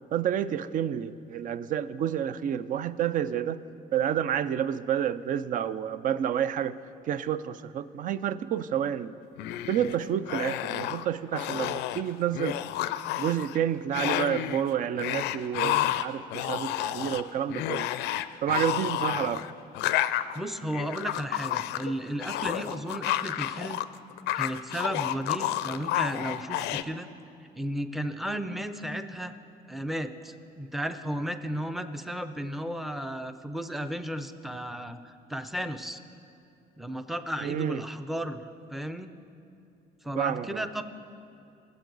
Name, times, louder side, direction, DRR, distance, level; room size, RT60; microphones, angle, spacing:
voice 1, 0.1-3.6 3.9-6.7 7.1-9.1 9.7-12.6 13.2-17.9 18.4-19.5 37.4-37.8 40.2-40.6, right 9 dB, 50° right, 15 dB, 0.4 m, -29 dB
sound 1, 9.4-10.0 10.3-11.0 11.3-12.0 12.3-13.6 13.9-14.6 15.0-23.8 24.1-26.8, left 13 dB, 85° left, 0.4 m, -30 dB
voice 2, 20.3-23.8 24.3-27.1 27.5-29.3 29.7-36.0 36.8-39.1 40.0-40.8, equal, ahead, 9 dB, 0.5 m, -34 dB
19.0 x 7.6 x 3.9 m, 2.6 s
cardioid pair, 110°, 17 cm